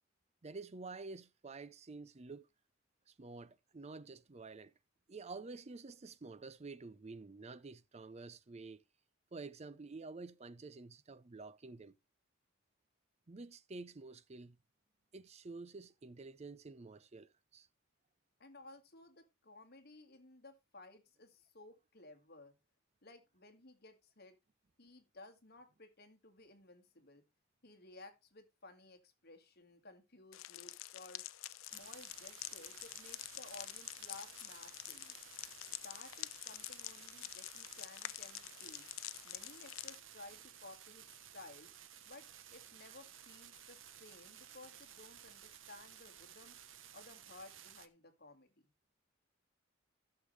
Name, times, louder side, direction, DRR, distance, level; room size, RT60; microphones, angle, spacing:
voice 1, 0.4-2.5 3.1-4.7 5.1-8.8 9.3-11.9 13.3-14.6 15.1-17.7, right 3 dB, 35° right, 0.5 m, -49 dB
voice 2, 18.4-22.5 23.0-24.4 24.8-27.2 27.6-31.2 31.6-35.2 35.7-38.9 39.2-41.7 42.1-46.6 46.9-48.7, left 2 dB, 50° left, 2.0 m, -57 dB
sound 1, 30.3-40.0, left 15 dB, 85° left, 0.5 m, -47 dB
sound 2, 31.7-47.9, right 10 dB, 75° right, 0.9 m, -56 dB
14.5 x 6.7 x 3.2 m
head